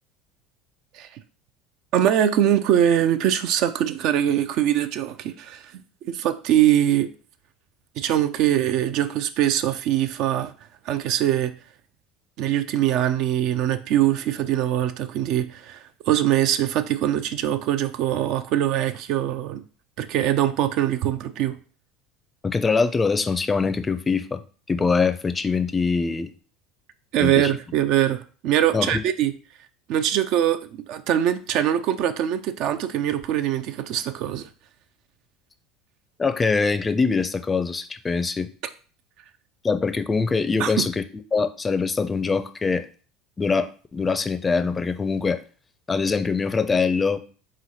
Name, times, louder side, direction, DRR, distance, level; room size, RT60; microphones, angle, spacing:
voice 1, 1.9-5.6 6.0-7.1 8.0-10.5 10.9-11.5 12.4-19.6 20.0-21.5 27.1-29.3 29.9-34.5 40.6-40.9, right 11 dB, 60° right, 0.4 m, -22 dB
voice 2, 22.4-24.4 24.7-26.3 27.2-27.5 28.7-29.0 36.2-38.5 39.6-41.0 41.3-42.9 43.4-45.4 45.9-47.2, left 4 dB, 20° left, 0.5 m, -23 dB
3.8 x 3.1 x 4.1 m
hypercardioid pair, 75°, 0 cm